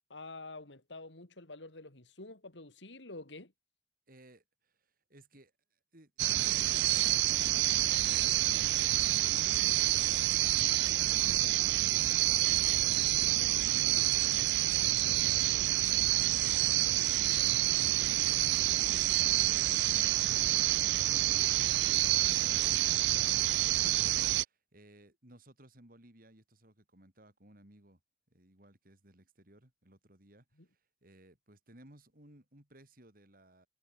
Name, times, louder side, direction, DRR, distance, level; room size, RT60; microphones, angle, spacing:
voice 1, 0.1-3.5 30.6-30.7, left 2 dB, 90° left, 3.4 m, -48 dB
voice 2, 4.1-10.3 10.7-20.2 20.4-28.0 28.3-33.7, right 1 dB, 50° right, 4.2 m, -59 dB
sound 1, 6.2-24.4, right 16 dB, 70° right, 0.4 m, -28 dB
head